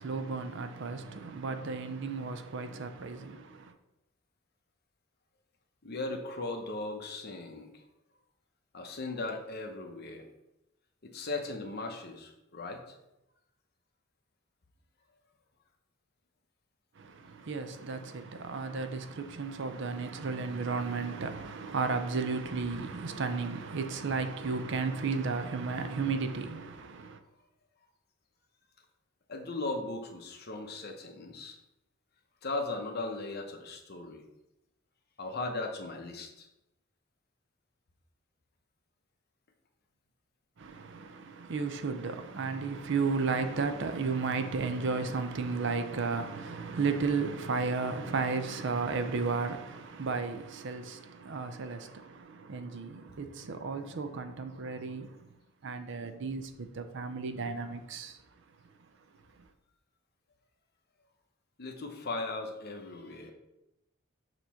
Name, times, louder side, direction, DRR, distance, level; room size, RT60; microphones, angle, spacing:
voice 1, 0.0-3.7 17.0-27.2 40.6-55.2 55.6-58.2, right 4 dB, 60° right, 0.5 m, -34 dB
voice 2, 5.8-7.8 8.7-10.3 11.0-12.8 29.3-31.6 32.4-34.2 35.2-36.5 61.6-63.3, left 2 dB, 50° left, 0.9 m, -37 dB
6.7 x 3.0 x 5.6 m
head